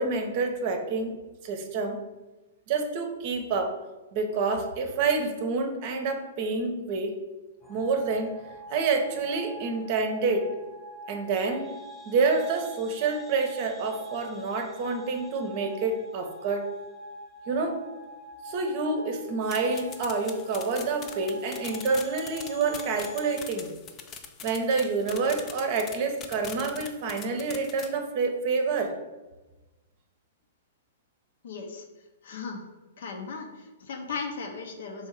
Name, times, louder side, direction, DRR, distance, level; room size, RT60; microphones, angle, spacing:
voice 1, 0.0-2.0 2.7-3.7 4.1-7.1 7.7-10.5 11.1-11.7 12.1-16.7 17.5-17.8 18.4-23.7 24.4-28.9, right 4 dB, 45° right, 5 dB, 0.7 m, -28 dB
sound 1, 7.6-23.4, equal, 5° left, 0.9 m, -44 dB
sound 2, 19.4-27.9, left 7 dB, 30° left, 0.4 m, -42 dB
voice 2, 31.4-31.9 32.2-32.6 33.0-35.1, left 4 dB, 65° left, 4 dB, 0.7 m, -37 dB
3.5 x 2.7 x 4.5 m, 1.1 s
figure-of-eight pair, 110°, 0 cm